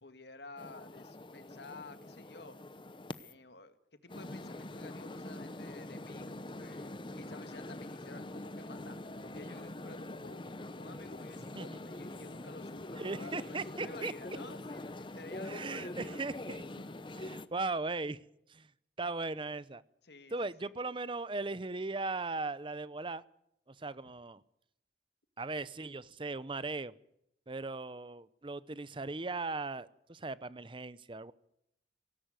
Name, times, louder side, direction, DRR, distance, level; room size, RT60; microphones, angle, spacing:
voice 1, 0.0-2.6 3.2-10.4 10.8-16.2 20.0-20.7, left 3 dB, 70° left, 10 dB, 1.9 m, -52 dB
sound 1, 0.6-3.3 4.1-17.5, left 1 dB, 30° left, 0.8 m, -44 dB
voice 2, 13.0-14.1 15.4-16.6 17.2-18.2 18.5-18.7 19.0-19.8 20.3-23.2 23.7-24.4 25.4-26.9 27.5-31.3, right 3 dB, 30° right, 18 dB, 0.7 m, -38 dB
18.0 x 17.0 x 9.1 m, 0.80 s
head